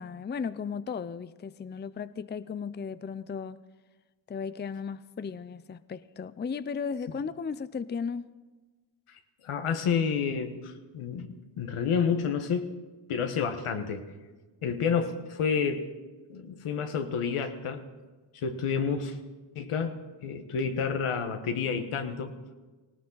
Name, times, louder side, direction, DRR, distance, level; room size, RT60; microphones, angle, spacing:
voice 1, 0.0-3.6 4.3-8.3, left 6 dB, 20° left, 0.5 m, -35 dB
voice 2, 9.1-12.7 13.1-14.1 14.6-15.9 16.3-17.8 18.3-19.2 19.5-22.3, left 6 dB, 85° left, 1.4 m, -30 dB
19.0 x 17.5 x 4.0 m
cardioid pair, 70°, 50 cm